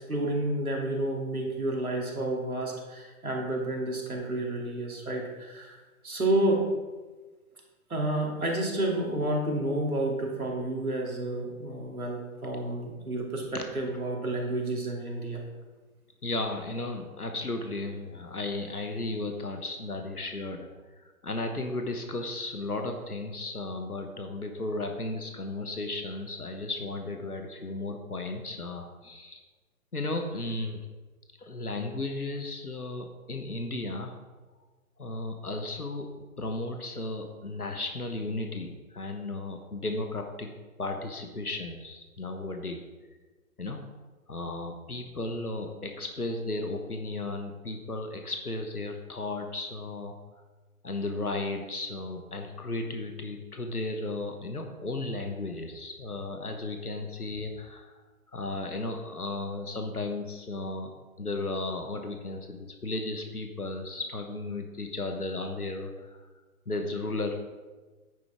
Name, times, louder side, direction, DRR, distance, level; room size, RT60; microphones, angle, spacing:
voice 1, 0.0-5.8 6.0-6.7 7.9-15.4, right 1 dB, 75° right, -1 dB, 2.6 m, -30 dB
voice 2, 16.2-20.7 21.0-29.4 29.9-30.8 31.4-34.2 35.0-36.1 36.4-40.5 40.8-42.8 43.6-43.9 44.3-50.2 50.8-58.0 58.3-60.9 61.2-66.3 66.7-67.4, left 2 dB, 85° left, 4 dB, 1.3 m, -34 dB
10.0 x 9.6 x 3.5 m, 1.3 s
figure-of-eight pair, 135°, 43 cm